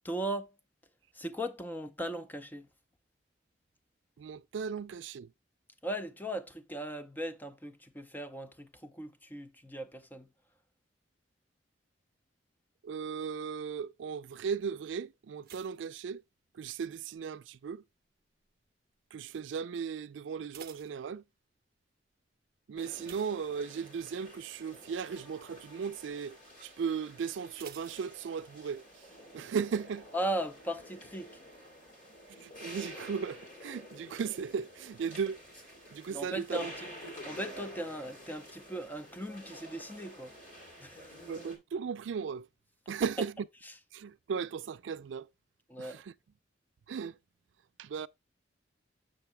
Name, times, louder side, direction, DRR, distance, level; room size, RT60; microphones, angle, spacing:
voice 1, 0.0-0.5 1.1-2.7 5.8-10.3 30.1-31.4 36.1-36.9 37.2-40.3 40.8-41.1 45.7-46.0, right 1 dB, 10° left, 0.5 m, -38 dB
voice 2, 4.2-5.3 12.8-16.2 16.5-17.8 19.1-21.2 22.7-29.1 29.3-30.1 32.3-35.4 35.9-36.7 41.3-42.5 42.9-43.3 43.9-45.3 45.8-46.1 46.9-47.2 47.8-48.1, right 6 dB, 85° right, 0.4 m, -36 dB
sound 1, 15.4-16.9 17.1-17.7 18.3-18.6 18.9-19.0 19.4-19.5 20.2-21.7 23.0-24.1 24.5-24.7 25.1-25.2 27.5-28.8 29.0-29.1, right 9 dB, 55° right, 0.7 m, -53 dB
sound 2, 22.8-41.6, equal, 45° left, 2.5 m, -50 dB
6.8 x 6.3 x 3.3 m
head